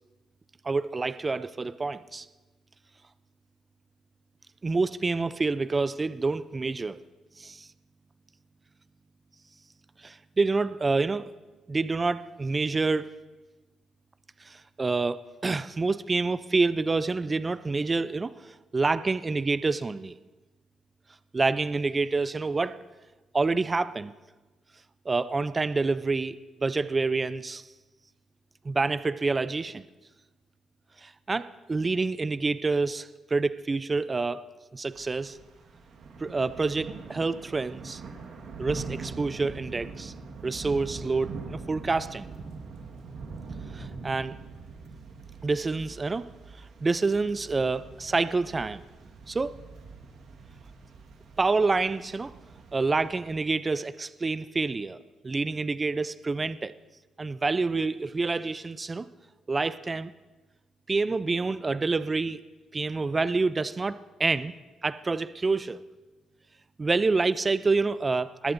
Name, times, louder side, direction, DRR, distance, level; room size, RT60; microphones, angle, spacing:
voice 1, 0.6-2.3 4.6-7.0 7.4-7.7 10.0-11.3 11.7-13.1 14.4-20.2 21.3-22.8 23.3-24.1 25.1-27.6 28.6-29.8 31.0-34.5 34.7-35.4 36.2-38.0 38.6-40.1 40.4-42.3 43.7-44.3 45.4-46.3 46.6-48.8 49.3-49.5 51.4-52.3 52.7-55.0 55.2-56.7 57.2-59.1 59.5-60.1 60.9-62.4 62.7-64.5 64.8-65.8 66.8-68.5, right 3 dB, 25° right, 0.4 m, -27 dB
Thunder / Rain, 34.9-53.3, right 4 dB, 65° right, 1.5 m, -43 dB
20.0 x 13.5 x 2.6 m
cardioid pair, 90°, 0 cm